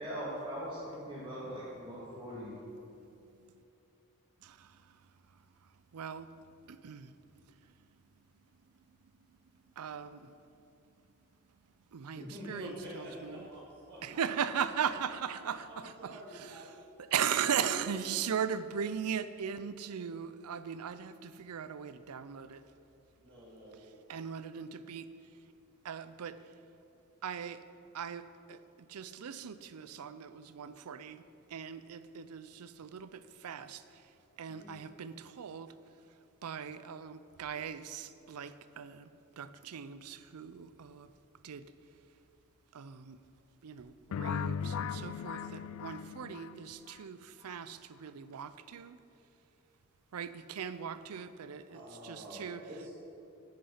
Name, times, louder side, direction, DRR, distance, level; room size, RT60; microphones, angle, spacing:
voice 1, 0.0-2.6, equal, 20° right, 1.7 m, -40 dB
voice 2, 5.9-6.3 6.7-7.1 9.8-10.3 11.9-12.7 13.0-13.4 14.0-15.7 16.0-16.6 17.1-22.6 24.1-25.1 25.8-26.4 27.2-27.6 27.9-28.6 28.9-31.2 31.5-33.8 34.4-35.7 36.4-39.1 39.4-41.1 41.4-41.6 42.7-43.2 43.6-49.0 50.1-52.6, right 7 dB, 85° right, 0.5 m, -38 dB
voice 3, 12.1-14.5 15.4-16.8 17.6-18.3 23.2-23.8 34.4-34.8 51.7-52.9, equal, 55° right, 2.5 m, -48 dB
sound 1, 44.1-47.0, left 7 dB, 70° left, 0.3 m, -37 dB
9.8 x 8.5 x 5.6 m
head